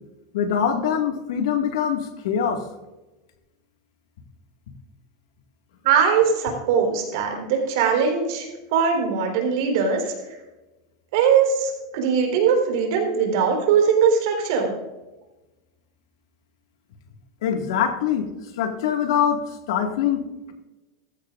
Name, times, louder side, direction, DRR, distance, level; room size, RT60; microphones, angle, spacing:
voice 1, 0.3-2.6 17.4-18.3 18.6-20.2, left 8 dB, 80° left, 4 dB, 1.9 m, -23 dB
voice 2, 5.8-10.1 11.1-14.7, right 6 dB, 60° right, 2 dB, 3.9 m, -21 dB
17.0 x 14.5 x 2.5 m, 1.1 s
supercardioid pair, 165°, 2 cm